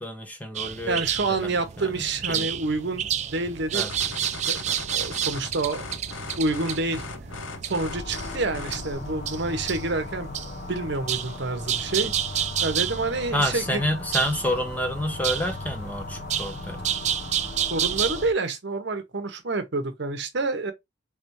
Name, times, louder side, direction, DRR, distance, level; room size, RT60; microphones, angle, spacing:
voice 1, 0.0-1.0 1.3-1.5 1.8-2.5 3.7-3.9 13.3-16.8, equal, 10° left, 0.7 m, -28 dB
sound 1, 0.6-18.3, right 9 dB, 35° right, 0.3 m, -31 dB
voice 2, 0.9-3.9 4.5-5.8 6.4-7.0 7.6-12.1 12.6-13.8 17.7-20.7, right 3 dB, 60° right, 0.9 m, -28 dB
sound 2, 3.9-8.9, left 3 dB, 75° left, 0.8 m, -39 dB
sound 3, 7.8-18.3, left 3 dB, 45° left, 0.5 m, -38 dB
3.6 x 3.3 x 3.0 m
head